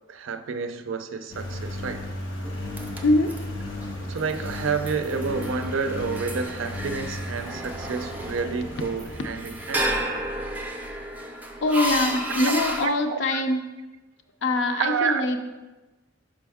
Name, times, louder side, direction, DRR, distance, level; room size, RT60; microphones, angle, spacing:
voice 1, 0.1-2.1 4.1-9.9 12.4-12.5 12.8-13.4 14.8-15.3, right 5 dB, 85° right, 0.4 m, -29 dB
Engine, 1.3-10.7, left 1 dB, 90° left, 1.2 m, -35 dB
sound 1, 2.4-12.9, right 1 dB, 10° right, 0.5 m, -33 dB
voice 2, 3.0-3.4 11.6-13.7 14.4-15.4, left 2 dB, 60° left, 0.4 m, -23 dB
6.1 x 5.0 x 3.5 m
head